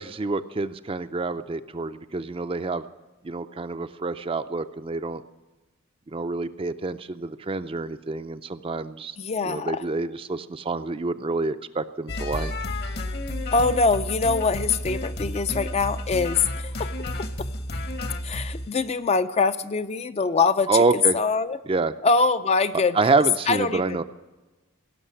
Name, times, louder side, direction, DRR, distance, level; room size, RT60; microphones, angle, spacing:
voice 1, 0.0-2.8 3.2-5.2 6.1-9.2 9.4-12.5 20.7-21.2 21.7-21.9 22.9-24.0, right 3 dB, 25° right, 11 dB, 0.4 m, -27 dB
voice 2, 9.2-9.8 13.5-16.9 18.2-20.7 21.1-21.6 22.0-24.0, left 4 dB, 30° left, 11 dB, 0.4 m, -23 dB
sound 1, 12.1-18.7, left 1 dB, 50° left, 1.1 m, -31 dB
17.0 x 6.6 x 9.9 m, 1.2 s
head